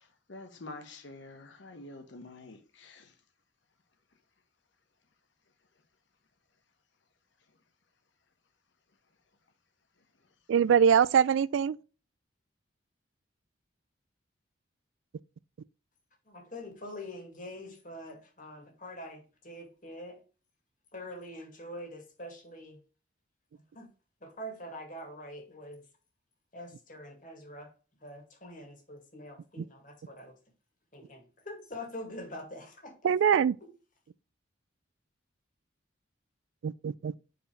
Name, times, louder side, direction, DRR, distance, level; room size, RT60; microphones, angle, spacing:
voice 1, 0.3-3.1, left 2 dB, 70° left, 1.1 m, -47 dB
voice 2, 10.5-11.7 33.0-33.6 36.6-37.2, right 7 dB, 75° right, 0.3 m, -23 dB
voice 3, 16.3-20.2 20.9-22.8 23.7-23.9 24.2-25.8 26.5-27.7 28.0-30.3 30.9-33.3, left 1 dB, 40° left, 2.3 m, -44 dB
5.1 x 4.7 x 5.1 m
head